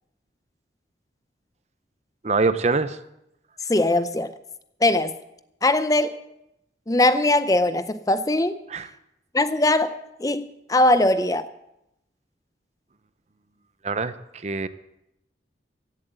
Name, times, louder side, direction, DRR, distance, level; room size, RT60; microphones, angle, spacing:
voice 1, 2.2-3.0 8.7-8.9 13.8-14.7, right 3 dB, 35° right, 0.6 m, -24 dB
voice 2, 3.7-4.3 4.8-5.1 5.6-6.2 6.9-8.6 9.3-9.9 10.2-11.5, left 1 dB, 20° left, 0.5 m, -20 dB
16.0 x 7.8 x 7.9 m
head